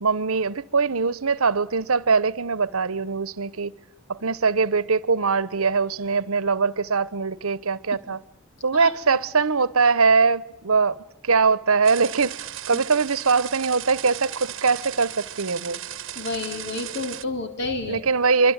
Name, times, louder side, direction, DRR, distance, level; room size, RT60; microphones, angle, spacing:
voice 1, 0.0-3.7 4.1-8.2 8.6-11.0 11.2-15.8 17.9-18.5, right 4 dB, 85° right, 1.0 m, -22 dB
voice 2, 8.7-9.2 12.7-12.8 16.2-18.0, left 3 dB, 50° left, 3.8 m, -30 dB
sound 1, 11.8-17.2, right 11 dB, 60° right, 1.1 m, -36 dB
25.0 x 25.0 x 8.9 m
head